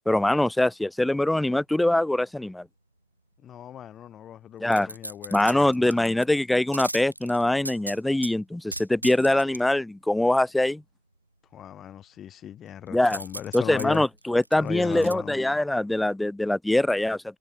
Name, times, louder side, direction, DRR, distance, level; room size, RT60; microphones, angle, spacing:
voice 1, 0.1-2.7 4.6-4.9 5.3-10.8 12.9-13.2 13.5-17.2, left 1 dB, 5° left, 0.8 m, -23 dB
voice 2, 3.4-5.7 11.5-14.0 14.6-15.4, left 10 dB, 30° left, 2.2 m, -37 dB
sound 1, 4.7-6.3 6.7-8.3 8.7-9.6 13.1-15.1 15.6-15.7, right 1 dB, 85° right, 5.5 m, -37 dB
figure-of-eight pair, 90°, 0 cm